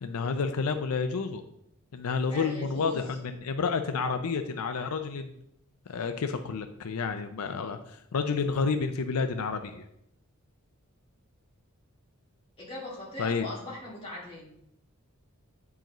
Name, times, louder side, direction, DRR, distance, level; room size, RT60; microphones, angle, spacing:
voice 1, 0.0-1.4 1.9-5.3 5.9-7.8 8.1-9.8 13.2-13.5, left 5 dB, 90° left, 8 dB, 0.5 m, -30 dB
voice 2, 2.3-3.0 12.6-14.5, left 1 dB, 25° left, -5 dB, 2.3 m, -40 dB
9.0 x 4.7 x 3.0 m, 0.76 s
head